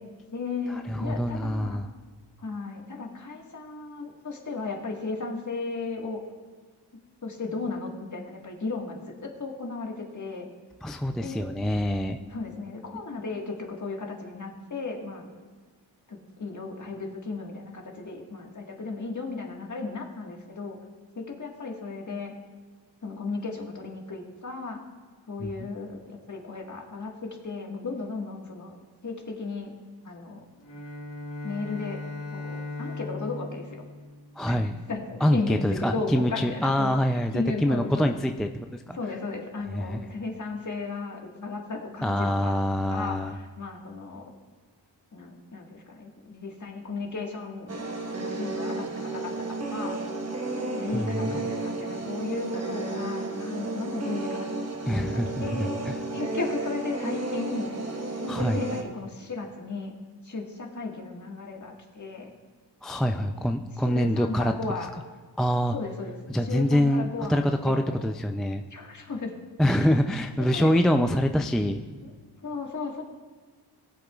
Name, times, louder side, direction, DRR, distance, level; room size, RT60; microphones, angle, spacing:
voice 1, 0.3-1.8 2.4-6.2 7.2-10.5 11.1-11.4 12.3-15.3 16.1-20.8 21.1-22.3 23.0-24.8 25.3-28.8 29.0-29.7 30.0-30.4 31.4-32.0 32.3-33.9 34.4-38.1 38.9-42.6 42.9-44.3 45.1-47.8 48.2-50.0 50.7-54.6 54.9-55.7 56.1-57.7 58.2-59.9 60.2-62.3 63.0-63.5 63.8-64.9 65.7-68.1 68.7-69.3 69.8-69.9 70.4-70.7 72.0-72.1 72.4-73.0, left 3 dB, 45° left, 1 dB, 1.7 m, -35 dB
voice 2, 0.9-1.9 10.8-12.2 25.4-25.7 34.4-34.7 35.2-39.0 39.7-40.0 42.0-43.3 50.9-51.3 54.9-55.9 58.3-58.6 62.8-64.5 65.4-65.7 66.3-68.6 69.6-71.8, equal, ahead, 5 dB, 0.3 m, -25 dB
Bowed string instrument, 30.6-35.0, left 3 dB, 90° left, 1.2 m, -38 dB
sound 1, 47.7-58.8, right 2 dB, 35° right, 1.2 m, -32 dB
19.0 x 8.0 x 2.4 m, 1.4 s
wide cardioid pair, 80°, 42 cm